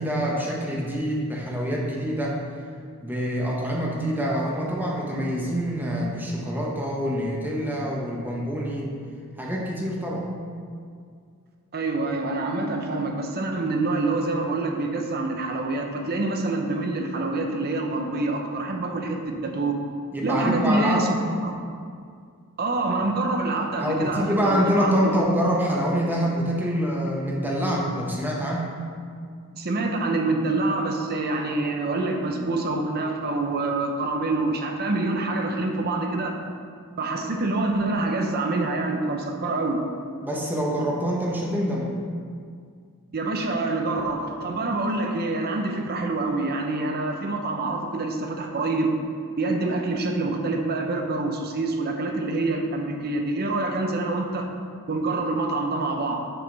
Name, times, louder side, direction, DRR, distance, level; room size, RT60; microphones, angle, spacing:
voice 1, 0.0-2.4 3.0-8.9 9.4-10.3 20.1-21.2 23.8-28.7 40.2-41.9, equal, 10° right, -3 dB, 1.0 m, -26 dB
voice 2, 11.7-19.8 20.2-21.1 21.4-21.6 22.6-25.2 29.5-36.4 37.0-39.8 43.1-48.9 49.4-54.5 54.9-56.2, right 2 dB, 45° right, 3 dB, 0.7 m, -26 dB
7.7 x 6.5 x 4.0 m, 2.2 s
head